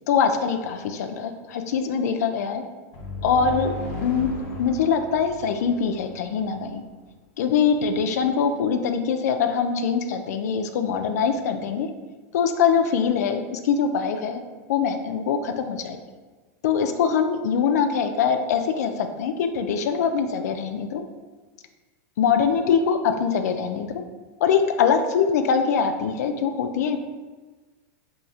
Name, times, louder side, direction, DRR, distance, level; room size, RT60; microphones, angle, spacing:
voice 1, 0.1-2.6 3.2-3.7 4.0-4.3 4.6-6.8 7.4-11.9 12.3-14.4 14.7-16.0 16.6-21.0 22.2-24.0 24.4-27.0, left 6 dB, 90° left, 7 dB, 0.4 m, -23 dB
sound 1, 2.9-6.7, left 2 dB, 50° left, 1.0 m, -35 dB
4.6 x 2.8 x 2.7 m, 1.3 s
supercardioid pair, 150°, 9 cm